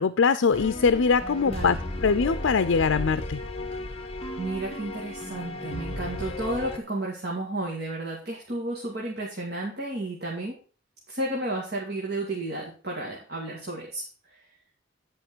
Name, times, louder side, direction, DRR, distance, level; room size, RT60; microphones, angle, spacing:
voice 1, 0.0-1.8 2.0-3.4, left 5 dB, 75° left, 12 dB, 0.5 m, -22 dB
sound 1, 0.5-6.8, left 1 dB, 30° left, 1.2 m, -34 dB
voice 2, 1.4-1.8 4.4-10.5 11.1-14.0, right 1 dB, 50° right, -3 dB, 2.2 m, -32 dB
10.5 x 5.2 x 6.1 m, 0.38 s
head